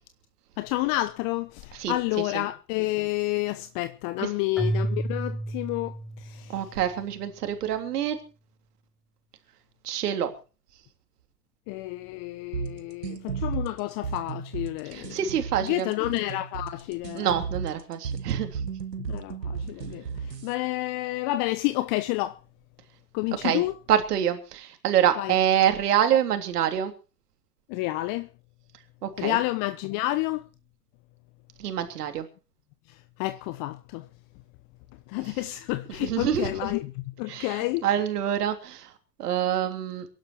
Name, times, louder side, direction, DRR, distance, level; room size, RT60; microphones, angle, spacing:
voice 1, 0.6-6.7 11.7-15.2 15.6-17.4 19.0-22.4 23.1-23.8 25.2-25.4 27.7-28.3 29.2-30.5 32.9-34.1 35.1-37.9, left 18 dB, 40° left, 1.1 m, -30 dB
Keyboard (musical), 4.6-6.8, right 2 dB, ahead, 3.3 m, -31 dB
voice 2, 6.5-8.2 9.8-10.3 14.9-15.9 17.2-18.5 23.4-23.6 23.9-26.9 29.0-29.4 31.6-32.3 36.0-36.5 37.3-38.9 39.2-40.1, right 10 dB, 65° right, 3.3 m, -26 dB
sound 1, 12.5-20.5, right 6 dB, 85° right, 1.7 m, -34 dB
23.5 x 11.5 x 4.6 m
figure-of-eight pair, 90°, 49 cm